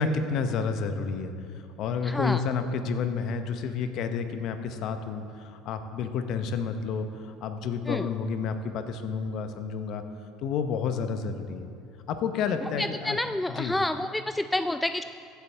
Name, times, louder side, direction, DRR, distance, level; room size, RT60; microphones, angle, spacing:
voice 1, 0.0-10.0 10.4-11.7 12.1-13.2 13.5-13.7, left 5 dB, 60° left, 8 dB, 0.8 m, -30 dB
voice 2, 2.0-2.4 7.9-8.1 12.8-15.0, left 1 dB, 10° left, 10 dB, 0.3 m, -29 dB
15.5 x 8.2 x 3.4 m, 2.5 s
hypercardioid pair, 75°, 0 cm